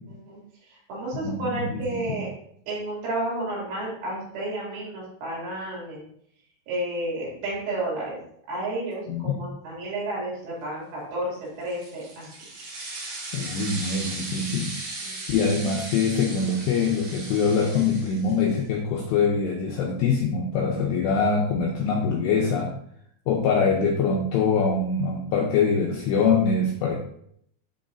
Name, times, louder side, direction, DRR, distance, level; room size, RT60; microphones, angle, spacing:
voice 1, 0.1-2.3 2.7-6.0 6.7-8.2 8.5-12.3 15.0-15.4, right 1 dB, 75° right, -6 dB, 5.2 m, -31 dB
voice 2, 1.1-1.8 2.1-2.2 9.1-9.3 13.3-14.7 15.3-22.7 23.3-27.0, left 5 dB, 85° left, 0 dB, 2.4 m, -24 dB
sound 1, 11.6-18.6, right 2 dB, 55° right, 2.3 m, -37 dB
11.0 x 3.9 x 2.6 m, 0.69 s
omnidirectional pair, 5.7 m